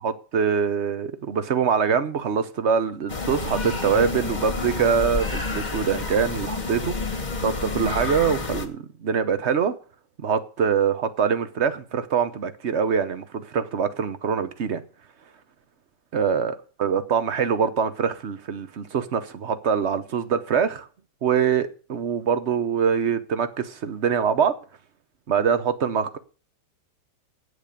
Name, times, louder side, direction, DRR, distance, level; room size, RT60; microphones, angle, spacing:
voice 1, 0.0-9.7 10.2-14.8 16.1-16.5 16.8-20.9 21.2-24.5 25.3-26.2, right 7 dB, 50° right, 0.9 m, -24 dB
sound 1, 3.1-8.7, left 3 dB, 25° left, 1.2 m, -29 dB
8.7 x 8.3 x 6.6 m
omnidirectional pair, 2.1 m